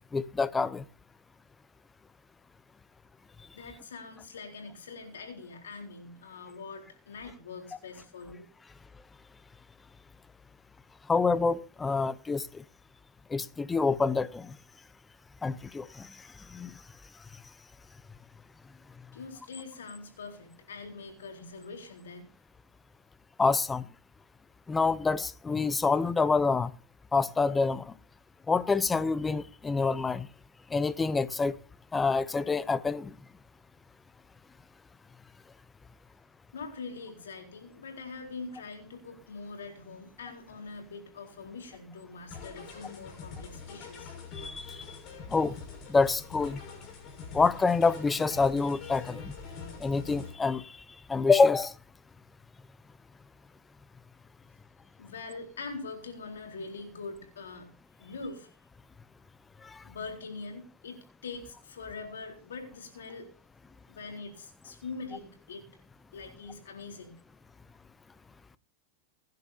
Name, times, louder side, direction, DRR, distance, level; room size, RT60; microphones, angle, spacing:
voice 1, 0.1-0.8 11.1-12.6 13.3-14.5 15.4-16.1 16.5-16.7 23.4-23.8 24.7-26.7 27.1-27.9 28.5-30.3 30.7-31.6 31.9-33.1 44.4-45.0 45.3-45.5 45.9-46.6 47.3-49.3 49.8-50.8 51.1-51.7 59.6-59.8, left 4 dB, 15° left, 0.7 m, -27 dB
voice 2, 3.5-8.5 19.1-22.3 36.5-44.1 55.0-57.7 58.0-58.5 59.8-63.3 63.9-65.6 66.1-67.2, left 4 dB, 90° left, 4.0 m, -43 dB
sound 1, 42.3-50.3, left 5 dB, 45° left, 5.9 m, -44 dB
23.0 x 10.5 x 2.8 m
hypercardioid pair, 115°, 0 cm